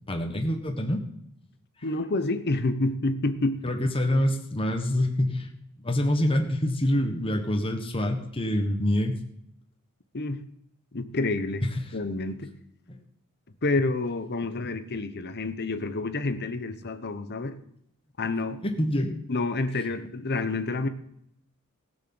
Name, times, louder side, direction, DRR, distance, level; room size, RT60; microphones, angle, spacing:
voice 1, 0.1-1.0 3.6-5.5 5.8-9.2 11.6-11.8 12.9-13.0 18.6-19.1, left 1 dB, 25° left, 3 dB, 1.5 m, -26 dB
voice 2, 1.8-3.6 10.1-10.4 10.9-11.6 11.9-12.5 13.6-17.6 18.2-18.6 19.3-20.9, left 2 dB, 50° left, 10 dB, 1.0 m, -28 dB
16.0 x 6.6 x 7.8 m, 0.73 s
head